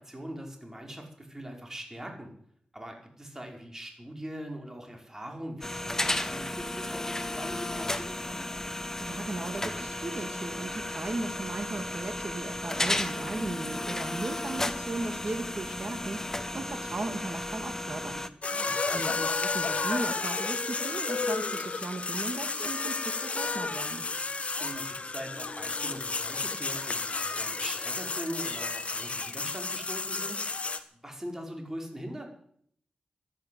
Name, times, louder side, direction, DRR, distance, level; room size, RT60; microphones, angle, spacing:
voice 1, 0.0-2.3 2.7-8.4 18.5-19.0 24.6-30.4 31.0-32.3, equal, 15° right, 2 dB, 5.1 m, -41 dB
sound 1, 5.6-18.3, left 1 dB, 15° left, 1.2 m, -34 dB
voice 2, 9.0-18.3 18.9-24.1, right 2 dB, 45° right, 7 dB, 2.5 m, -37 dB
sound 2, 18.4-30.8, left 4 dB, 50° left, 1.5 m, -32 dB
15.0 x 10.5 x 8.6 m, 0.64 s
cardioid pair, 70°, 3 cm